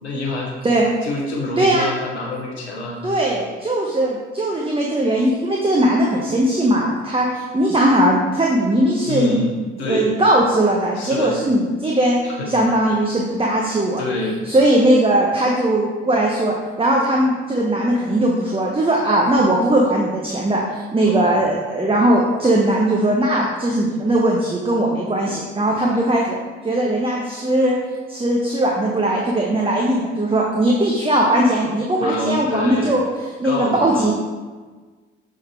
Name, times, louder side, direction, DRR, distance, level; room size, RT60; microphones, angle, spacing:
voice 1, 0.0-0.5 1.0-3.1 9.0-10.1 10.9-11.4 12.2-12.5 14.0-14.5 21.0-21.4 32.0-32.9 33.4-34.1, left 2 dB, 85° left, -1 dB, 1.0 m, -26 dB
voice 2, 1.6-1.9 3.0-9.4 9.9-12.2 12.5-14.0 14.4-26.4 26.6-27.8 28.1-33.1 33.4-34.1, right 1 dB, 15° right, -2 dB, 1.0 m, -19 dB
6.8 x 3.7 x 4.8 m, 1.4 s
figure-of-eight pair, 40°, 32 cm